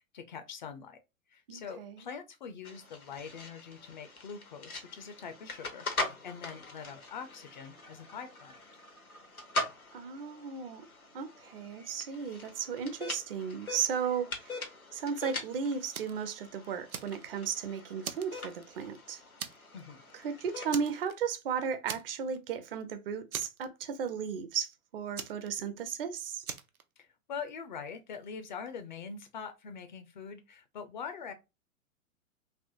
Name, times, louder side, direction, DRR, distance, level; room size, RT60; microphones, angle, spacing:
voice 1, 0.1-1.0 1.3-8.6 19.7-20.0 27.0-31.3, left 6 dB, 35° left, 0.4 m, -43 dB
voice 2, 1.5-2.0 9.9-10.9 11.1-14.7 14.9-19.2 20.1-26.4, right 7 dB, 45° right, 0.6 m, -35 dB
sound 1, 2.6-21.0, left 2 dB, 90° left, 0.9 m, -42 dB
Fire, 15.9-16.2 16.6-17.6 18.0-19.0 19.4-19.8 20.1-20.2 20.7-21.4 21.9-22.4 22.7-22.8 23.3-24.1 25.2-26.0 26.4-26.8, right 7 dB, 80° right, 0.6 m, -41 dB
3.3 x 2.9 x 2.5 m
figure-of-eight pair, 100°, 42 cm